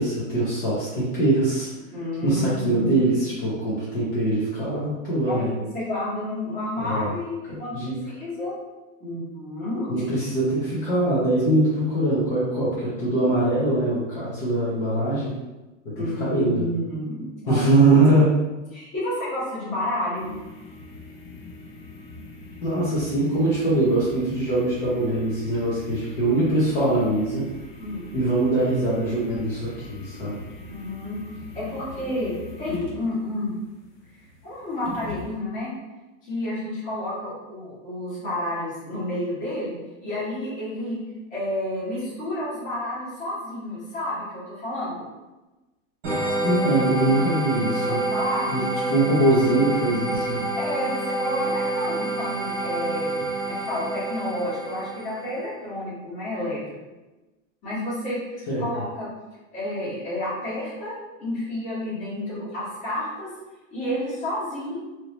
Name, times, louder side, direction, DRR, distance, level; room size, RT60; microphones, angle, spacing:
voice 1, 0.0-1.7 2.2-5.5 6.8-7.1 7.5-8.0 9.9-15.3 15.8-16.7 17.5-18.3 22.6-27.5 28.1-30.5 46.4-48.0 48.5-48.6 48.9-50.4 58.5-58.7, right 2 dB, 40° left, -8 dB, 1.0 m, -22 dB
voice 2, 1.9-3.1 5.3-8.5 9.0-10.1 16.0-18.2 18.7-20.3 27.8-28.1 30.6-31.2 31.5-32.3 32.6-33.5 34.4-35.7 36.2-39.7 40.0-41.0 41.3-45.1 47.7-48.5 50.5-53.1 53.4-56.8 57.6-59.1 59.5-60.9 61.2-63.3 63.7-64.8, left 1 dB, 20° left, -10 dB, 1.1 m, -30 dB
sound 1, 20.1-35.4, left 2 dB, 75° left, 1.3 m, -41 dB
sound 2, 46.0-55.4, right 2 dB, 25° right, 1.1 m, -27 dB
2.9 x 2.7 x 3.1 m, 1.1 s
supercardioid pair, 180°, 40 cm